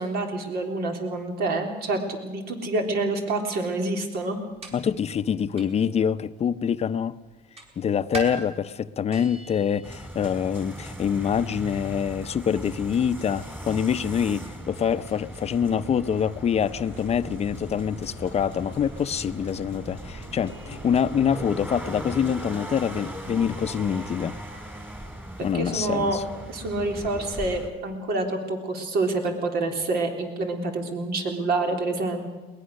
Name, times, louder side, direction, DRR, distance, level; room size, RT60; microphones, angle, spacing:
voice 1, 0.0-4.4 25.4-26.2 26.5-32.3, right 2 dB, 65° right, 3.5 m, -27 dB
sound 1, 4.1-17.3, right 3 dB, 35° right, 4.8 m, -44 dB
voice 2, 4.7-7.2 7.8-24.4 25.4-26.2, left 8 dB, 40° left, 0.7 m, -25 dB
sound 2, 9.8-27.7, right 1 dB, 10° right, 2.7 m, -39 dB
sound 3, 16.6-21.6, right 1 dB, 80° right, 7.1 m, -45 dB
21.5 x 19.5 x 6.5 m
cardioid pair, 110°, 17 cm